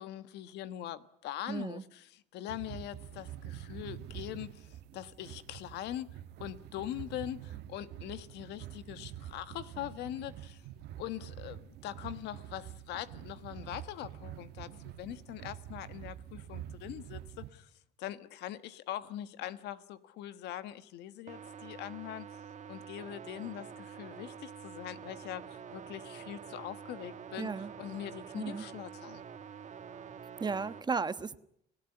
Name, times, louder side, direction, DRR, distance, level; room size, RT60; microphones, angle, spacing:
voice 1, 0.0-6.1 6.4-10.7 11.0-17.7 18.0-22.4 22.7-29.2, left 12 dB, 85° left, 1.4 m, -42 dB
voice 2, 1.5-1.8 27.4-27.7 28.3-28.7 30.4-31.4, right 5 dB, 25° right, 1.2 m, -34 dB
sound 1, 2.5-17.5, right 12 dB, 80° right, 1.5 m, -47 dB
sound 2, 21.3-30.8, right 7 dB, 45° right, 1.8 m, -47 dB
30.0 x 17.0 x 9.8 m
cardioid pair, 110°, 17 cm